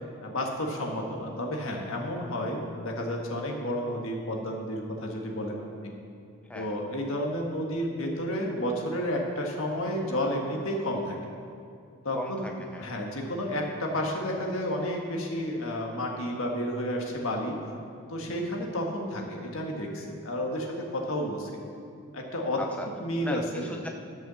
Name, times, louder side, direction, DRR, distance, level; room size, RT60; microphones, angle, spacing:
voice 1, 0.2-5.9 6.5-11.2 12.0-12.4 12.8-17.6 18.1-21.6 22.1-22.6 23.0-23.7, equal, 65° left, 0 dB, 1.5 m, -31 dB
voice 2, 12.1-12.9 18.3-18.5 22.6-22.9 23.2-23.9, left 1 dB, 5° left, 2 dB, 0.4 m, -38 dB
11.5 x 5.6 x 6.9 m, 2.5 s
head